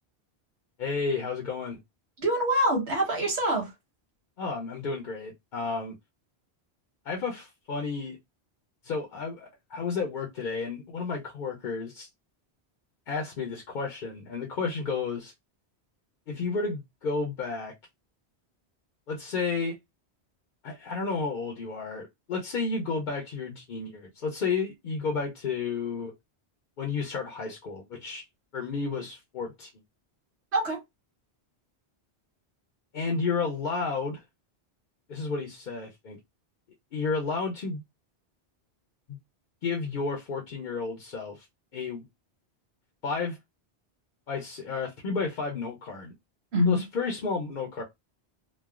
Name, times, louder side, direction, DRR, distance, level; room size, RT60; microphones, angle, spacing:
voice 1, 0.8-1.8 4.4-6.0 7.0-8.2 8.8-12.1 13.1-15.3 16.3-17.7 19.1-19.8 20.6-26.1 26.8-28.2 28.5-29.7 32.9-34.2 35.1-36.2 36.9-37.8 39.1-39.2 39.6-41.5 41.7-42.0 43.0-43.4 44.3-46.1 46.7-47.8, left 4 dB, 55° left, 0.7 m, -32 dB
voice 2, 2.2-3.7 30.5-30.8 46.5-46.8, equal, 85° right, 1.4 m, -25 dB
3.1 x 2.1 x 2.3 m
omnidirectional pair, 1.1 m